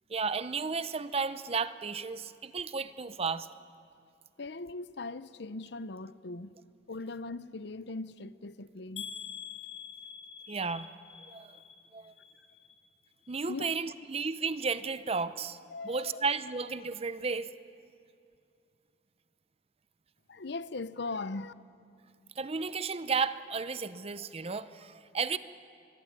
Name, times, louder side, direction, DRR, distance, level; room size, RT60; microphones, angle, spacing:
voice 1, 0.1-3.5 10.5-10.9 11.3-11.6 11.9-12.1 13.3-15.6 15.8-17.5 22.4-25.4, right 4 dB, 35° right, 0.7 m, -33 dB
voice 2, 4.4-6.5 6.9-9.1 13.5-13.7 15.7-16.2 20.3-21.5, left 3 dB, 65° left, 0.8 m, -39 dB
sound 1, 9.0-12.9 13.2-13.8 14.3-14.4 14.8-14.9, left 8 dB, 85° left, 1.7 m, -46 dB
24.5 x 22.0 x 9.7 m
head